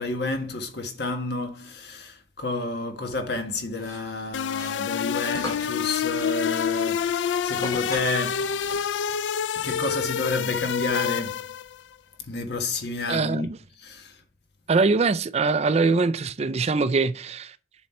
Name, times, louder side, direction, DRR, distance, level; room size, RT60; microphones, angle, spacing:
voice 1, 0.0-8.5 9.6-11.4 12.2-13.5 13.7-14.2, left 2 dB, 65° left, 1.5 m, -30 dB
sound 1, 3.8-9.1, left 1 dB, 20° left, 2.0 m, -40 dB
sound 2, 4.3-11.8, left 8 dB, 90° left, 0.3 m, -27 dB
voice 2, 13.1-13.5 14.7-17.6, right 4 dB, 35° right, 0.4 m, -22 dB
7.4 x 6.5 x 4.3 m
head